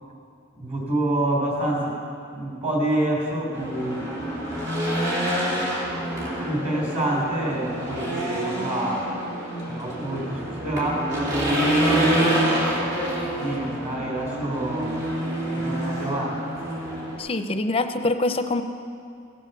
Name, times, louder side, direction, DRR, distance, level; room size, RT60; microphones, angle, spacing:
voice 1, 0.5-1.9 2.3-4.1 6.4-9.0 9.7-11.0 13.0-15.2 15.5-16.4, right 1 dB, 35° right, -2 dB, 3.6 m, -27 dB
Race car auto racing / Engine, 3.5-17.2, right 1 dB, 55° right, 3.1 m, -26 dB
voice 2, 17.2-18.6, left 2 dB, 30° left, 8 dB, 0.6 m, -24 dB
16.5 x 7.6 x 6.9 m, 2.4 s
head